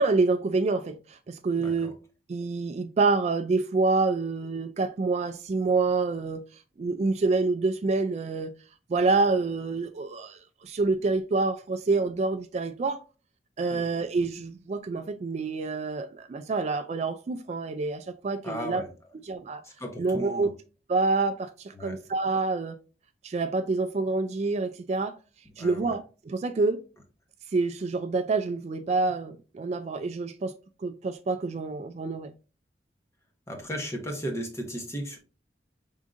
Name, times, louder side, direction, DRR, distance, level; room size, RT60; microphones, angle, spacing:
voice 1, 0.0-1.9 2.3-6.4 6.8-8.5 8.9-13.0 13.6-18.8 19.3-19.6 20.0-20.5 20.9-22.8 23.2-25.1 25.6-26.8 27.5-30.5 30.8-32.3, right 3 dB, 35° right, 0.3 m, -27 dB
voice 2, 1.6-1.9 13.7-13.9 18.4-18.9 19.6-20.5 21.7-22.0 25.6-25.9 33.5-35.2, equal, 15° left, 0.9 m, -36 dB
5.0 x 3.6 x 2.5 m
head